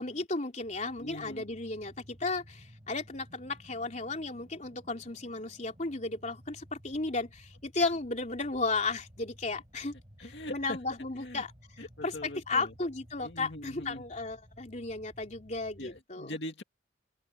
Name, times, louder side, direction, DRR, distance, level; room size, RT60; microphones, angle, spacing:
voice 1, 0.0-16.4, left 3 dB, 40° left, 3.6 m, -34 dB
sound 1, 0.6-16.0, equal, 30° right, 6.4 m, -56 dB
voice 2, 1.0-1.5 10.2-10.8 11.2-11.4 11.8-12.7 13.2-14.1 15.8-16.6, left 1 dB, 65° left, 2.3 m, -42 dB
open air
head